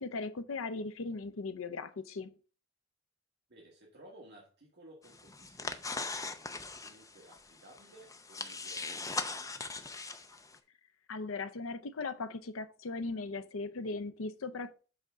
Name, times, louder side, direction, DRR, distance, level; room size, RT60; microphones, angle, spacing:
voice 1, 0.0-2.3 11.1-14.7, left 3 dB, 75° left, 0.6 m, -38 dB
voice 2, 3.5-9.7, right 1 dB, 55° right, 1.6 m, -57 dB
sound 1, 5.0-10.6, left 3 dB, 15° left, 0.6 m, -40 dB
7.9 x 3.6 x 5.1 m
head